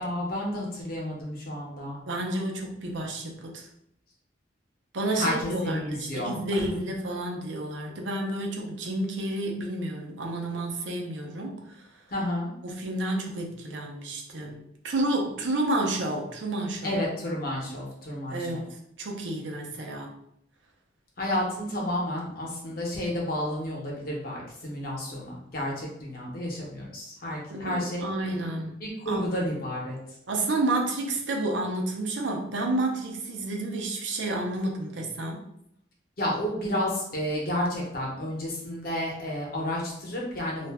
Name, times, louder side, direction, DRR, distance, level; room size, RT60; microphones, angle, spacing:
voice 1, 0.0-2.0 5.1-6.8 12.1-12.5 16.8-18.6 21.2-28.1 28.8-30.0 36.2-40.7, left 1 dB, 50° left, -3 dB, 0.8 m, -31 dB
voice 2, 2.0-3.7 4.9-11.8 12.6-17.0 18.3-20.1 27.5-28.8 29.1-29.3 30.3-35.4, right 2 dB, 75° right, 1 dB, 0.6 m, -30 dB
2.4 x 2.1 x 3.4 m, 0.75 s
head